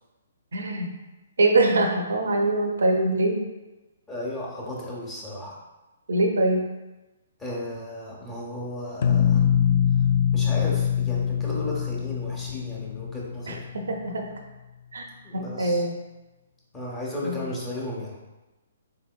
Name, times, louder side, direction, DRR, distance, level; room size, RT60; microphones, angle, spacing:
voice 1, 0.5-0.9 1.4-3.5 6.1-6.6 13.5-14.3 14.9-15.0 15.3-16.0 17.2-17.5, right 2 dB, 75° right, 3 dB, 0.5 m, -23 dB
voice 2, 4.1-5.6 7.4-9.5 10.3-13.6 15.2-15.8 16.7-18.2, left 1 dB, 15° left, -4 dB, 1.0 m, -34 dB
sound 1, 9.0-13.9, left 9 dB, 55° left, 0.4 m, -23 dB
3.9 x 3.7 x 2.2 m, 1.1 s
figure-of-eight pair, 130°, 0 cm